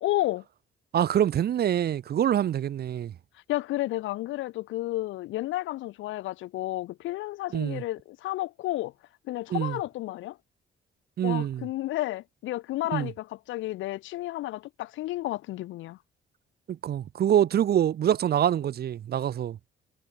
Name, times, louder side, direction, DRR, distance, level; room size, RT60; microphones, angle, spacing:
voice 1, 0.0-0.4 3.5-8.9 9.3-10.4 11.2-16.0, left 16 dB, 80° left, 0.5 m, -31 dB
voice 2, 0.9-3.1 7.5-7.8 9.5-9.8 11.2-11.7 12.9-13.1 16.7-19.6, right 10 dB, 55° right, 0.7 m, -25 dB
cardioid pair, 90°, 20 cm